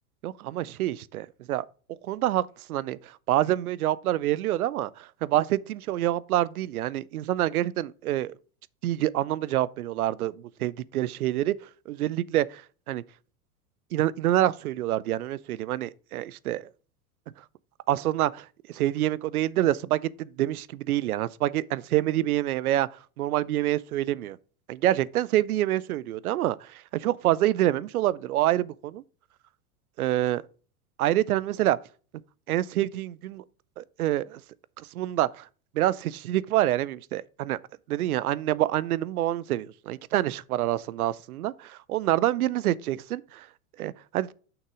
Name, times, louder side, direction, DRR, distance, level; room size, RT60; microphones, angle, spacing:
voice 1, 0.2-1.6 2.0-8.3 8.8-10.3 10.6-11.5 11.9-12.6 12.9-13.0 13.9-16.7 17.9-22.9 23.2-24.4 24.7-29.0 30.0-30.4 31.0-31.8 32.5-33.4 33.8-34.4 34.9-35.5 35.7-37.6 37.9-43.5 43.8-44.3, right 14 dB, 80° right, 0.6 m, -27 dB
6.6 x 6.0 x 3.6 m
hypercardioid pair, 95°, 43 cm